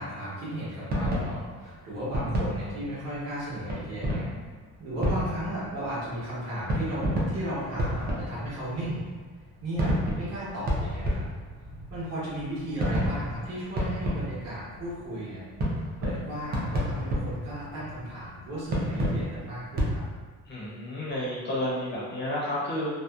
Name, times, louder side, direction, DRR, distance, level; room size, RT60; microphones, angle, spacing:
voice 1, 0.0-4.3 4.8-9.1 9.6-11.2 11.9-15.5 16.0-20.0, right 1 dB, 55° right, -8 dB, 1.1 m, -35 dB
sound 1, 0.9-19.9, equal, 30° right, 0.4 m, -31 dB
voice 2, 20.5-22.9, left 1 dB, 35° left, -7 dB, 0.6 m, -31 dB
2.7 x 2.0 x 2.3 m, 1.5 s
cardioid pair, 165°, 31 cm